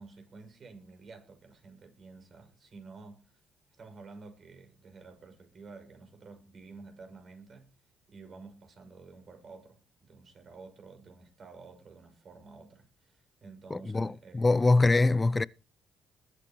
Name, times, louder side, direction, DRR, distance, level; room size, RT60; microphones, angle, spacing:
voice 1, 0.0-3.3 3.8-7.8 8.1-14.8, right 4 dB, 50° right, 6.1 m, -51 dB
voice 2, 13.7-15.5, left 3 dB, 25° left, 0.5 m, -24 dB
21.0 x 8.9 x 3.0 m
cardioid pair, 85°, 0 cm